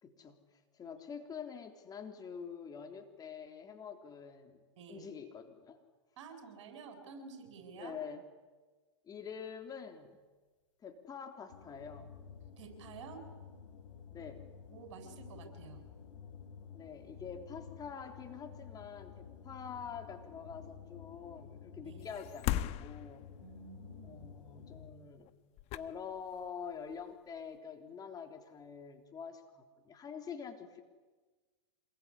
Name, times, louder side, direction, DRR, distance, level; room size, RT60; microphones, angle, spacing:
voice 1, 0.0-4.6 4.9-5.8 7.8-8.2 9.0-10.2 10.8-12.1 14.1-14.4 16.7-23.3 24.0-25.3 25.7-30.8, left 6 dB, 25° left, 5 dB, 3.4 m, -46 dB
voice 2, 4.8-5.1 6.2-8.0 12.6-13.2 14.7-15.8 21.8-22.2 23.4-24.3, right 5 dB, 65° right, 6 dB, 7.6 m, -50 dB
sound 1, 11.5-25.2, left 7 dB, 75° left, 4.1 m, -52 dB
sound 2, 22.0-23.6 25.2-25.3 25.6-26.5 26.9-27.1, left 13 dB, 40° left, 1.3 m, -37 dB
26.5 x 21.5 x 9.9 m, 1.3 s
hypercardioid pair, 110°, 16 cm